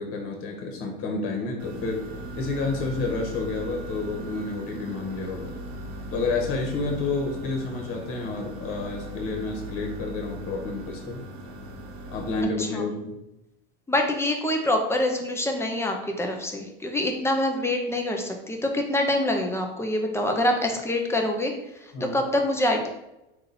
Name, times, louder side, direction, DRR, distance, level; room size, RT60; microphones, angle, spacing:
voice 1, 0.0-2.0 2.3-5.6 6.1-11.2 12.1-13.2 21.9-22.2, left 3 dB, 45° left, 1 dB, 1.4 m, -30 dB
sound 1, 1.6-12.4, right 1 dB, 45° right, 1.0 m, -38 dB
voice 2, 12.6-12.9 13.9-21.5 21.8-22.9, left 1 dB, 10° left, 2 dB, 0.7 m, -25 dB
3.8 x 2.7 x 4.2 m, 0.90 s
hypercardioid pair, 95°, 31 cm